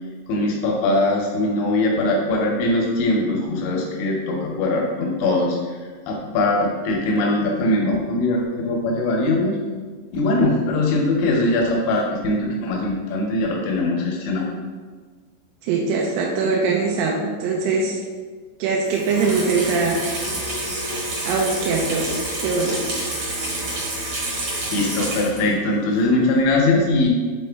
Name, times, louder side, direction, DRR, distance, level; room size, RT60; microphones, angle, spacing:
voice 1, 0.3-5.6 6.1-9.6 10.1-14.5 24.7-27.1, left 2 dB, 80° left, -1 dB, 2.6 m, -21 dB
voice 2, 15.6-18.0 18.6-20.0 21.2-22.1 22.4-22.8, right 4 dB, 85° right, -2 dB, 3.3 m, -22 dB
Water tap faucet / Sink (filling or washing), 18.9-25.6 26.0-26.1, right 1 dB, 60° right, 1.6 m, -28 dB
7.6 x 4.1 x 3.4 m, 1.5 s
omnidirectional pair, 5.9 m